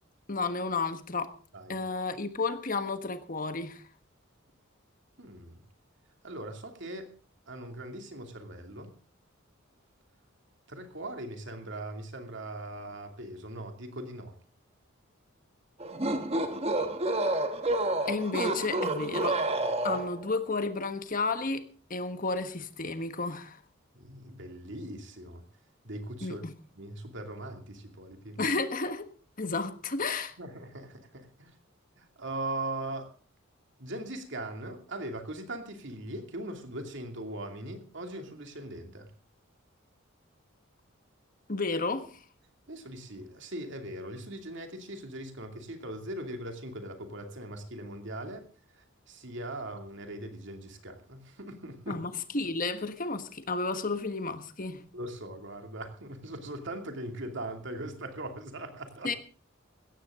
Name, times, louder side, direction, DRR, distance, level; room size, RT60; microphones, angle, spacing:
voice 1, 0.3-1.3 1.7-3.8 18.1-19.4 19.8-23.6 26.2-26.5 28.4-29.1 29.4-30.3 41.5-42.1 51.9-54.8 59.0-59.1, left 3 dB, 40° left, 9 dB, 1.4 m, -32 dB
voice 2, 5.2-5.6 6.2-7.1 7.5-8.9 10.7-14.3 19.9-20.0 24.0-25.4 25.8-26.4 26.8-28.4 30.4-31.5 32.0-33.1 33.8-39.1 42.7-48.4 49.1-52.0 54.9-59.1, right 1 dB, 60° right, 5 dB, 2.5 m, -40 dB
sound 1, 15.8-20.3, right 2 dB, 30° right, 1.2 m, -29 dB
16.5 x 14.5 x 3.7 m, 0.39 s
head